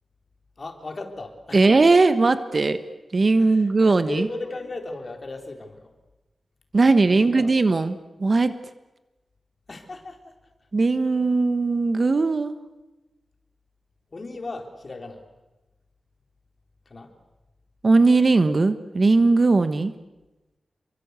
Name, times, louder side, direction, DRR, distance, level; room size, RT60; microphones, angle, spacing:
voice 1, 0.6-1.8 3.4-5.9 7.1-7.5 9.7-10.4 14.1-15.2 16.9-17.1, left 2 dB, 40° left, 4 dB, 3.8 m, -36 dB
voice 2, 1.5-2.8 3.1-4.3 6.7-8.5 10.7-12.6 17.8-19.9, right 3 dB, 40° right, 11 dB, 1.3 m, -19 dB
28.5 x 23.5 x 8.3 m, 1.1 s
wide cardioid pair, 130°, 0 cm